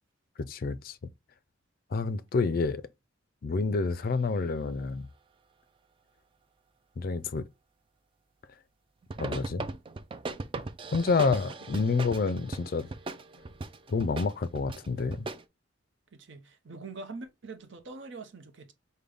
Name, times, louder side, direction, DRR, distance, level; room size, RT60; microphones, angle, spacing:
voice 1, 0.4-1.0 1.9-2.8 3.4-5.1 7.0-7.5 9.2-9.7 10.9-12.9 13.9-15.3, left 4 dB, 45° left, 0.4 m, -28 dB
sound 1, 9.0-15.4, right 3 dB, 25° right, 0.3 m, -38 dB
voice 2, 16.1-18.7, right 3 dB, 60° right, 0.7 m, -44 dB
5.3 x 2.2 x 3.3 m
head